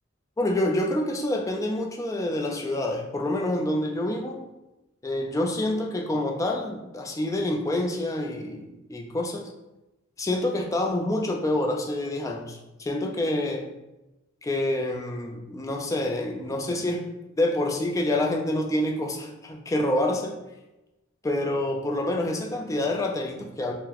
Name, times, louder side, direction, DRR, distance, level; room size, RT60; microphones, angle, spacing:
voice 1, 0.4-4.4 5.0-9.5 10.2-13.7 14.4-17.1 17.4-20.4 21.2-23.7, left 1 dB, 15° left, 1 dB, 0.3 m, -27 dB
3.8 x 2.1 x 2.8 m, 0.98 s
head